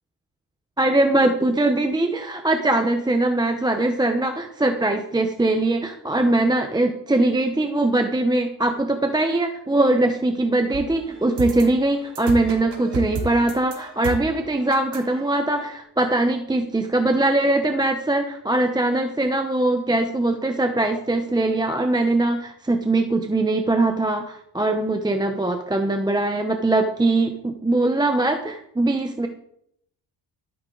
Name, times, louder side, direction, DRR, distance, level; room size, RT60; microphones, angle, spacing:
voice 1, 0.8-29.3, right 2 dB, 10° right, 5 dB, 0.8 m, -21 dB
sound 1, 10.7-15.8, right 4 dB, 60° right, 3.5 m, -33 dB
13.0 x 13.0 x 3.9 m, 0.70 s
cardioid pair, 155°, 47 cm